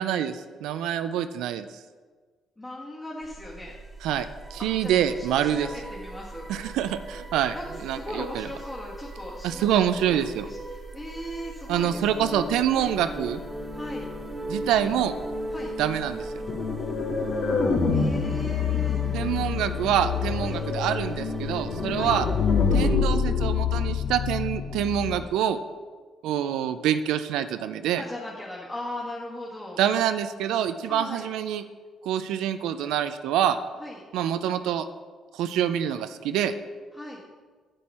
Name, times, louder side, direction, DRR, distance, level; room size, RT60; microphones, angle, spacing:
voice 1, 0.0-1.7 4.0-5.7 6.5-7.5 7.8-8.5 9.4-10.5 11.7-13.4 14.5-15.1 15.8-16.3 19.1-22.3 22.7-25.6 26.2-28.0 29.8-31.6 32.0-33.6 34.1-34.9 35.3-36.5, right 10 dB, 90° right, 10 dB, 0.4 m, -26 dB
voice 2, 2.6-3.8 4.6-6.5 7.5-12.4 12.7-12.9 13.7-14.1 15.5-15.7 17.9-19.0 20.4-20.6 21.9-22.2 28.0-29.8 30.9-31.3 33.8-34.0 36.9-37.2, left 1 dB, 20° left, -5 dB, 1.8 m, -38 dB
sound 1, 3.2-23.0, right 1 dB, 10° right, 1.5 m, -38 dB
sound 2, 16.5-25.2, left 5 dB, 60° left, 1.2 m, -26 dB
9.9 x 7.7 x 4.3 m, 1.5 s
cardioid pair, 95°, 0 cm